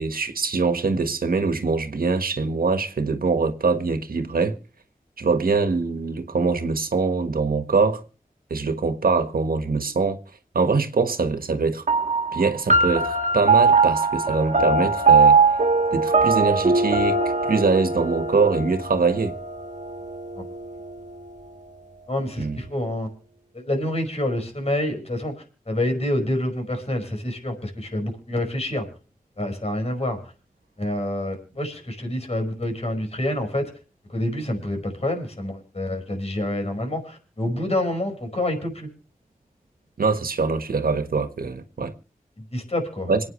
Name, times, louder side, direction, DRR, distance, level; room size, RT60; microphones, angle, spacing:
voice 1, 0.0-4.6 5.2-8.0 8.5-10.2 10.5-11.8 12.3-15.4 15.9-19.4 22.4-22.6 40.0-41.9 43.1-43.2, right 4 dB, 85° right, 1.5 m, -23 dB
sound 1, 11.9-20.7, right 4 dB, 55° right, 1.7 m, -21 dB
voice 2, 22.1-23.1 23.5-25.4 25.7-28.9 29.4-30.2 30.8-33.7 34.1-38.9 42.5-43.1, left 1 dB, 45° left, 5.1 m, -27 dB
27.0 x 9.3 x 3.1 m
wide cardioid pair, 80°, 15 cm